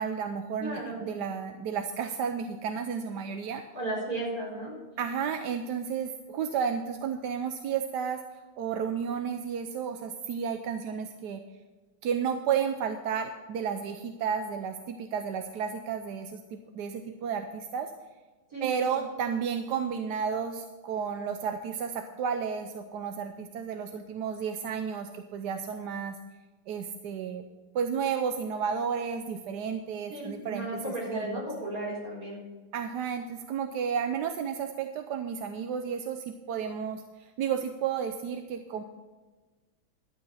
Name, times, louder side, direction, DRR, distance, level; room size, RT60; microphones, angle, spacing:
voice 1, 0.0-3.6 5.0-8.2 8.6-11.4 12.0-17.9 18.6-26.2 26.7-27.4 27.7-31.5 32.7-37.0 37.4-38.8, right 7 dB, 65° right, 7 dB, 1.2 m, -32 dB
voice 2, 0.6-1.2 3.7-4.7 18.5-19.0 30.1-32.4, right 1 dB, 40° right, -4 dB, 5.0 m, -35 dB
12.0 x 8.6 x 5.7 m, 1.3 s
omnidirectional pair, 2.2 m